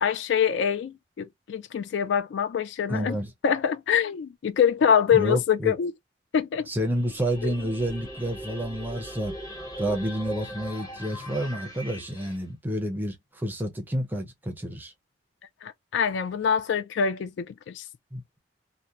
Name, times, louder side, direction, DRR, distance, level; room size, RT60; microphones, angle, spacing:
voice 1, 0.0-3.2 3.4-5.9 6.3-6.7 7.4-7.5 15.6-17.8, left 7 dB, 70° left, 0.3 m, -25 dB
voice 2, 2.9-3.3 5.1-5.7 6.7-9.3 9.8-14.9 18.1-18.2, equal, 10° right, 0.5 m, -29 dB
sound 1, 6.9-12.4, equal, 20° left, 0.8 m, -40 dB
2.7 x 2.1 x 2.3 m
head